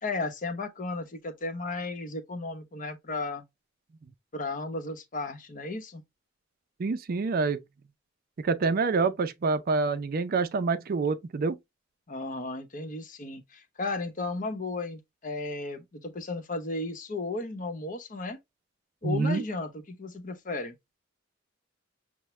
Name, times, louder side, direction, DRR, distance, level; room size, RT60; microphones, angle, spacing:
voice 1, 0.0-3.4 4.3-6.0 12.1-18.4 19.0-20.8, left 3 dB, 45° left, 0.8 m, -34 dB
voice 2, 6.8-7.6 8.4-11.5 19.0-19.4, right 4 dB, 50° right, 0.4 m, -27 dB
5.8 x 2.1 x 3.0 m
head